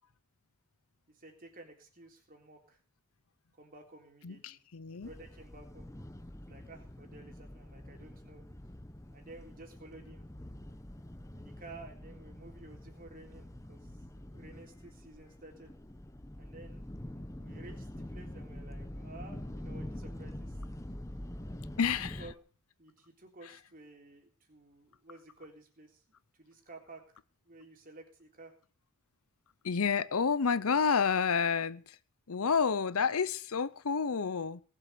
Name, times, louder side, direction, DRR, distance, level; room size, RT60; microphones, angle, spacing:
voice 1, 1.1-2.8 3.5-4.6 4.9-5.9 6.4-8.5 9.1-10.3 11.3-15.8 16.4-16.8 17.4-20.6 22.2-22.3 22.8-26.0 26.4-27.0 27.4-28.5 32.4-32.6, right 2 dB, 40° right, 3.6 m, -53 dB
voice 2, 4.2-5.1 21.8-22.2 29.6-32.0 32.3-34.6, left 6 dB, 80° left, 0.7 m, -29 dB
sound 1, 5.0-22.3, left 1 dB, 15° left, 0.8 m, -46 dB
19.0 x 7.8 x 6.8 m
head